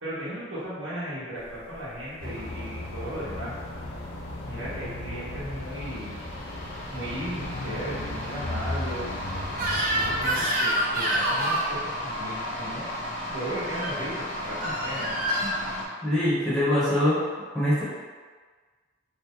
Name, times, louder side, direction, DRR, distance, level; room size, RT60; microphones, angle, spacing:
voice 1, 0.0-3.5 4.4-6.3 6.9-9.1 9.7-12.8 13.3-15.1, equal, 75° right, -11 dB, 1.2 m, -36 dB
sound 1, 1.4-15.8, left 1 dB, 40° left, 0.6 m, -36 dB
sound 2, 2.2-10.4, left 1 dB, 90° left, 0.6 m, -36 dB
Crying sobbing / Screech, 9.5-11.7 13.6-14.0 14.6-15.6, right 1 dB, 45° right, 0.6 m, -27 dB
voice 2, 16.0-17.2 17.5-17.8, left 1 dB, ahead, -13 dB, 1.0 m, -23 dB
3.0 x 2.5 x 3.7 m, 1.5 s
head